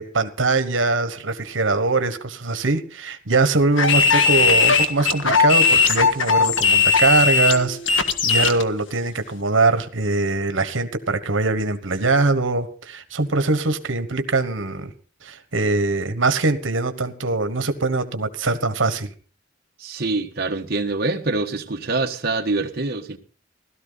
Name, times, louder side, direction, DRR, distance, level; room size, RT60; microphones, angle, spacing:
voice 1, 0.0-14.9 15.2-19.1, right 3 dB, 85° right, 1.3 m, -22 dB
sound 1, 3.8-8.6, left 5 dB, 85° left, 1.6 m, -18 dB
voice 2, 19.8-23.2, right 3 dB, 55° right, 1.4 m, -25 dB
17.0 x 13.0 x 4.0 m
head